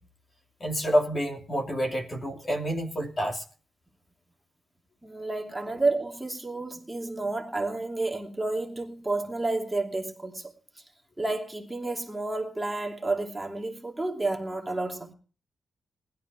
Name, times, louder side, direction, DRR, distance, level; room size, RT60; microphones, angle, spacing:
voice 1, 0.6-3.4, equal, 30° left, 2.7 m, -28 dB
voice 2, 5.0-10.8 11.2-15.1, right 2 dB, 10° right, 2.8 m, -31 dB
19.5 x 12.5 x 4.7 m
wide cardioid pair, 130°, 0 cm